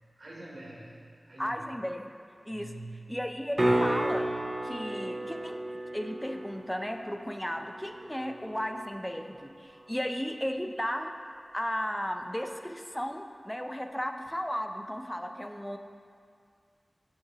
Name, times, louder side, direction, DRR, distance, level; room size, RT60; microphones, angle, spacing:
voice 1, 0.2-1.6 2.5-3.2, right 2 dB, 75° right, -4 dB, 1.0 m, -45 dB
voice 2, 1.4-2.1 2.5-2.7 3.1-4.3 4.6-5.6 5.9-11.1 11.5-15.8, equal, 10° left, 5 dB, 0.4 m, -35 dB
sound 1, 3.6-9.6 14.3-14.4, right 1 dB, 45° right, 0.6 m, -33 dB
5.3 x 3.7 x 5.0 m, 2.3 s
wide cardioid pair, 65°, 0 cm